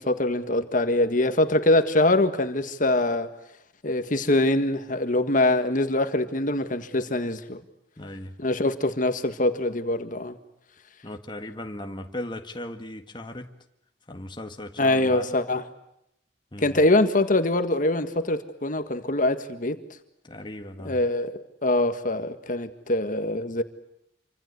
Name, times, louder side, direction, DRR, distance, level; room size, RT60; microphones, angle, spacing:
voice 1, 0.0-3.3 3.8-7.6 8.4-10.4 14.8-15.7 16.6-19.8 20.8-21.3 21.6-23.6, left 2 dB, 50° left, 1.8 m, -23 dB
voice 2, 8.0-8.3 11.0-13.5 14.1-15.4 16.5-16.8 20.2-21.0, left 1 dB, 25° left, 1.8 m, -37 dB
27.5 x 25.5 x 8.2 m
head